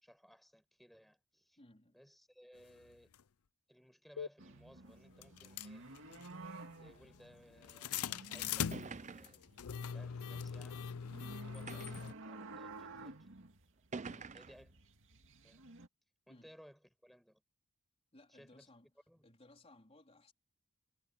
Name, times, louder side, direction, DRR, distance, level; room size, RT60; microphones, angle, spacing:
voice 1, 0.0-1.6 1.9-3.1 3.7-5.9 6.8-9.4 9.9-10.8 11.3-13.6 14.3-14.7 15.4-15.6 16.3-17.4 18.3-18.7 19.1-19.3, equal, ahead, 5.3 m, -61 dB
voice 2, 1.6-2.0 14.1-14.4 16.3-16.5 18.1-18.9 19.2-20.3, left 1 dB, 30° left, 4.2 m, -61 dB
sound 1, 3.1-3.2 4.2-4.3 5.2-12.1, left 8 dB, 80° left, 0.5 m, -42 dB
sound 2, 4.4-9.1 9.4-15.9, right 2 dB, 60° right, 2.3 m, -53 dB
sound 3, 8.1-8.2 8.7-9.5 10.4-10.5 11.7-12.2 13.1-13.2 13.9-14.7, right 4 dB, 35° right, 0.6 m, -47 dB
head